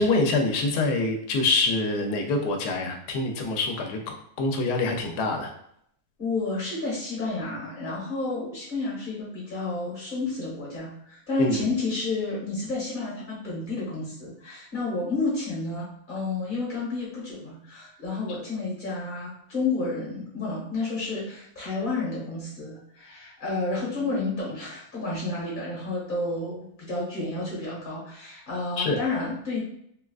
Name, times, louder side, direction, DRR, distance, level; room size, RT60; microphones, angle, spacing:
voice 1, 0.0-5.5 11.4-11.7 28.8-29.0, left 2 dB, 80° left, 4 dB, 1.1 m, -25 dB
voice 2, 6.2-29.6, left 3 dB, 35° left, -6 dB, 1.2 m, -31 dB
3.6 x 2.3 x 2.3 m, 0.70 s
omnidirectional pair, 1.7 m